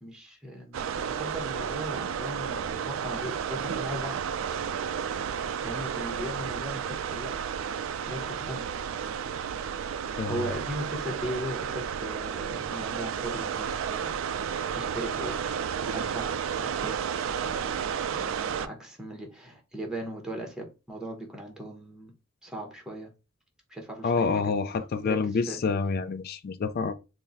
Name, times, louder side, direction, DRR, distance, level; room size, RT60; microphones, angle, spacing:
voice 1, 0.0-4.4 5.6-7.3 8.0-8.7 10.3-15.4 15.9-17.0 17.4-22.1 22.4-23.1 23.7-24.5 25.0-25.6, equal, 5° right, 0.8 m, -38 dB
sound 1, 0.7-18.7, right 7 dB, 75° right, 0.3 m, -32 dB
voice 2, 10.2-10.5 24.0-26.9, left 4 dB, 50° left, 0.4 m, -28 dB
3.7 x 2.1 x 3.9 m
head